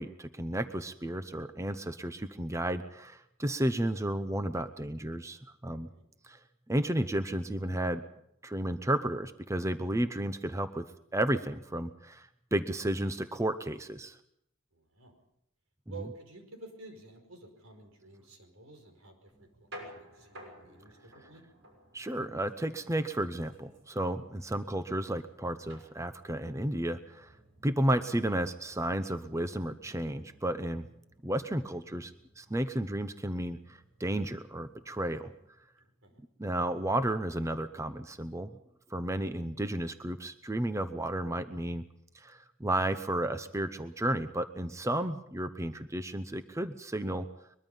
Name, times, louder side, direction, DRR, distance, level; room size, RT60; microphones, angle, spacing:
voice 1, 0.0-5.9 6.2-6.4 6.7-8.0 8.4-10.9 11.1-14.2 21.2-21.3 21.9-27.3 27.6-30.9 31.2-35.3 36.4-38.6 38.9-41.8 42.1-47.3, right 1 dB, 15° right, 10 dB, 0.7 m, -32 dB
voice 2, 14.7-15.1 15.9-21.4 35.8-36.2, right 3 dB, 85° right, 5 dB, 5.1 m, -51 dB
sound 1, 19.3-35.5, right 1 dB, 60° right, 6.5 m, -56 dB
22.5 x 22.5 x 5.5 m, 0.77 s
head